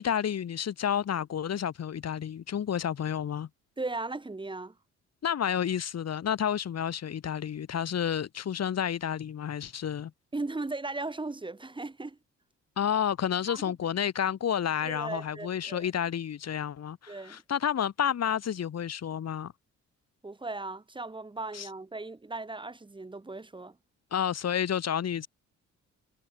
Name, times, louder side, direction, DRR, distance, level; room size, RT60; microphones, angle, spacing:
voice 1, 0.0-3.5 5.2-10.1 12.8-19.5 21.5-21.7 24.1-25.3, left 9 dB, 55° left, 5.2 m, -30 dB
voice 2, 3.8-4.7 10.3-12.2 13.5-13.6 14.8-15.9 17.1-17.4 20.2-23.8, right 2 dB, 15° right, 2.3 m, -37 dB
cardioid pair, 90°, 30 cm